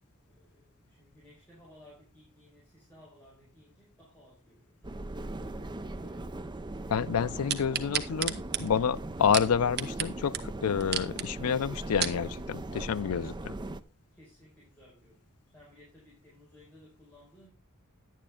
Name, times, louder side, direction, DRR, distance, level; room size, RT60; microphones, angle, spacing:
voice 1, 0.3-6.9 14.0-17.5, left 1 dB, 10° left, 4.7 m, -58 dB
sound 1, 4.8-13.8, right 2 dB, 20° right, 0.5 m, -39 dB
voice 2, 6.9-13.5, left 7 dB, 75° left, 0.4 m, -29 dB
sound 2, 7.5-10.1 10.3-10.4 10.8-11.3 11.7-12.2 12.8-12.9, right 9 dB, 50° right, 1.0 m, -32 dB
10.5 x 9.3 x 3.5 m
head